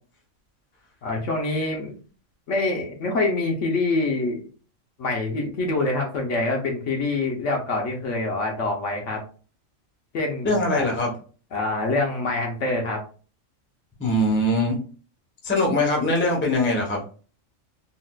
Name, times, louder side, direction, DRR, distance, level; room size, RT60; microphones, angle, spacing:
voice 1, 1.0-2.0 2.5-4.4 5.0-9.2 10.1-11.0 11.5-13.0, left 2 dB, 65° left, 1 dB, 1.1 m, -25 dB
voice 2, 10.4-11.1 14.0-14.8 15.4-17.0, left 1 dB, 10° left, -1 dB, 0.6 m, -22 dB
3.9 x 2.3 x 2.2 m, 0.38 s
omnidirectional pair, 1.4 m